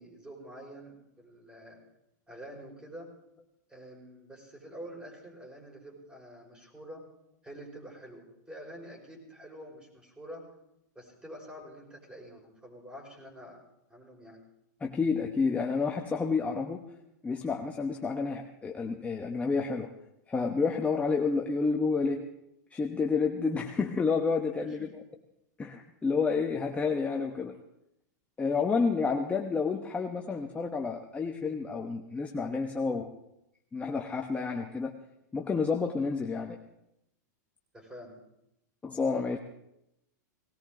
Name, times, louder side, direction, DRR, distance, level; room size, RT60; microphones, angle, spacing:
voice 1, 0.0-1.8 2.3-3.1 3.7-7.0 7.4-10.4 11.0-13.6 13.9-14.4 24.6-24.9 37.7-38.2, equal, 10° right, -1 dB, 5.4 m, -47 dB
voice 2, 14.8-16.8 17.2-19.9 20.3-22.3 22.7-24.8 25.6-27.6 28.4-33.1 33.7-34.9 35.3-36.6 38.8-39.4, left 4 dB, 15° left, 2 dB, 1.0 m, -30 dB
19.0 x 17.5 x 3.9 m, 0.83 s
hypercardioid pair, 120°, 10 cm